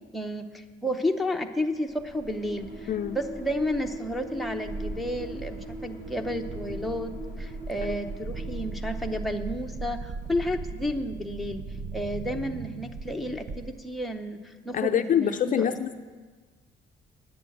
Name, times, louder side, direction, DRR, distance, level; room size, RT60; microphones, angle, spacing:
voice 1, 0.1-2.9 3.1-11.6 11.9-15.8, equal, ahead, 2 dB, 0.7 m, -31 dB
sound 1, 1.8-9.6, right 1 dB, 15° right, 2.7 m, -41 dB
voice 2, 2.9-3.2 14.7-16.0, left 9 dB, 45° left, 8 dB, 0.4 m, -25 dB
sound 2, 4.7-14.0, right 3 dB, 40° right, 0.6 m, -38 dB
10.5 x 8.0 x 8.6 m, 1.4 s
cardioid pair, 150°, 20 cm